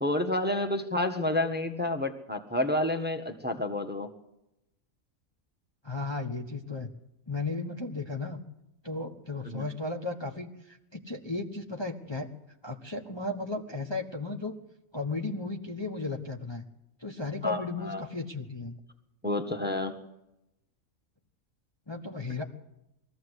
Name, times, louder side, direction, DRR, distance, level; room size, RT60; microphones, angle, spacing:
voice 1, 0.0-4.1 9.5-9.6 17.4-18.0 19.2-19.9, left 1 dB, 10° right, 5 dB, 1.4 m, -29 dB
voice 2, 5.8-6.9 7.3-8.4 8.8-12.3 12.6-14.6 14.9-16.6 17.0-18.8 21.9-22.4, left 3 dB, 20° left, 2 dB, 1.3 m, -35 dB
21.5 x 14.5 x 8.2 m, 0.87 s
omnidirectional pair, 1.4 m